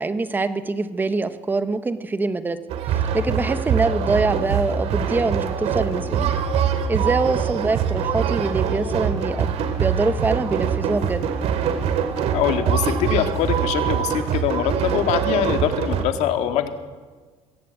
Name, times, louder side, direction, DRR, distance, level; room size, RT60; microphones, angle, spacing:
voice 1, 0.0-2.6 2.8-6.3 6.6-11.2, right 3 dB, 15° right, 11 dB, 1.0 m, -24 dB
sound 1, 2.7-16.0, right 7 dB, 65° right, 2.6 m, -23 dB
voice 2, 12.3-16.7, left 9 dB, 75° left, 7 dB, 2.0 m, -23 dB
22.0 x 17.0 x 8.3 m, 1.4 s
cardioid pair, 160°, 12 cm